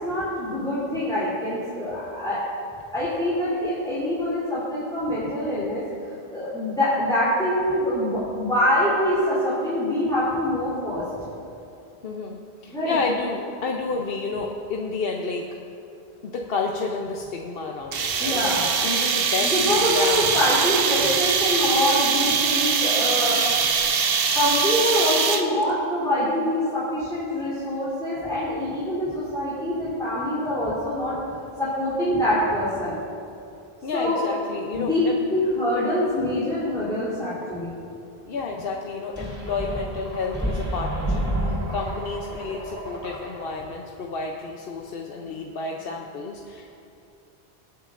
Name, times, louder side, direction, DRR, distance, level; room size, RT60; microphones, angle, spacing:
voice 1, 0.0-2.4 2.9-5.8 6.3-11.2 12.7-13.0 18.2-18.7 19.4-23.7 24.3-31.1 31.6-33.0 33.9-34.3 34.7-35.0 35.3-37.8, left 1 dB, 5° left, -11 dB, 3.1 m, -25 dB
voice 2, 12.0-15.5 16.2-20.3 33.8-35.2 38.3-41.1 41.4-46.7, left 4 dB, 65° left, 1 dB, 0.9 m, -30 dB
sound 1, 17.9-25.6, right 6 dB, 65° right, 0.9 m, -22 dB
sound 2, 39.2-43.7, right 1 dB, 15° right, 2.1 m, -30 dB
23.5 x 8.6 x 2.5 m, 2.6 s
omnidirectional pair, 1.1 m